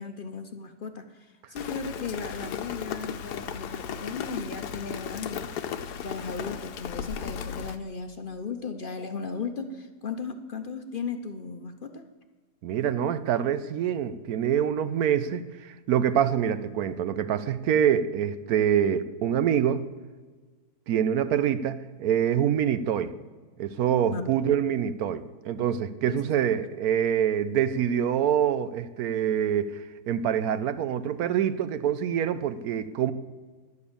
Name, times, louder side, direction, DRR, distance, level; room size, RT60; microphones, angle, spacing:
voice 1, 0.0-5.4 5.9-12.1 24.1-24.3 26.1-26.5, left 5 dB, 50° left, 7 dB, 0.6 m, -36 dB
Rain, 1.6-7.8, left 8 dB, 75° left, 1.3 m, -36 dB
voice 2, 12.6-19.9 20.9-23.1 23.6-33.1, right 9 dB, 70° right, 13 dB, 1.0 m, -25 dB
11.5 x 8.3 x 6.9 m, 1.4 s
omnidirectional pair, 1.7 m